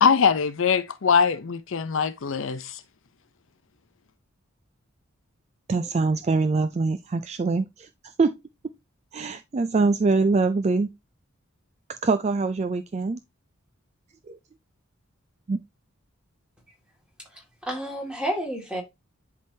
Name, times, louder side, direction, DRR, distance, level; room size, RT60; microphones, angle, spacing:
voice 1, 0.0-2.8, left 6 dB, 60° left, 0.5 m, -22 dB
voice 2, 5.7-7.9 8.2-8.4 9.1-10.9 12.0-13.2 14.3-14.4 15.5-15.6, right 3 dB, 30° right, 0.3 m, -23 dB
voice 3, 17.3-18.8, equal, 5° right, 2.0 m, -31 dB
10.5 x 3.6 x 2.7 m
head